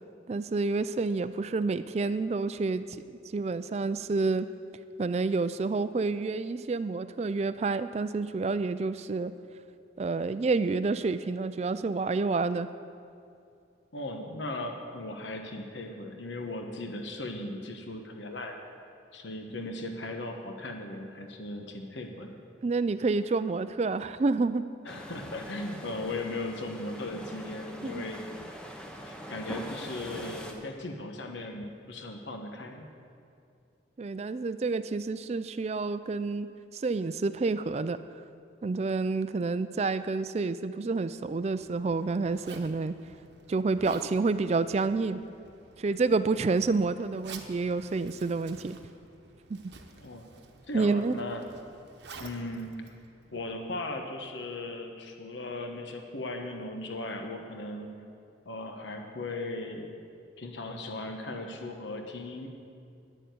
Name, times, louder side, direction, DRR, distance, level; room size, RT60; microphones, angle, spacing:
voice 1, 0.3-4.5 5.0-9.3 10.0-12.7 22.6-24.6 27.8-28.0 34.0-38.0 38.6-43.0 43.5-45.2 45.8-48.8 49.5-49.6 50.7-51.2, right 3 dB, 35° right, 13 dB, 0.3 m, -29 dB
voice 2, 13.9-18.6 19.1-22.4 24.8-28.3 29.0-32.8 50.0-50.3 50.7-51.4 52.2-52.8 53.3-57.9 58.4-59.9 60.4-62.5, left 2 dB, 80° left, 3 dB, 1.1 m, -37 dB
sound 1, 24.9-30.5, equal, 5° left, 0.8 m, -43 dB
Zipper (clothing), 41.1-53.8, right 4 dB, 65° right, 0.9 m, -51 dB
9.8 x 6.9 x 9.1 m, 2.5 s
head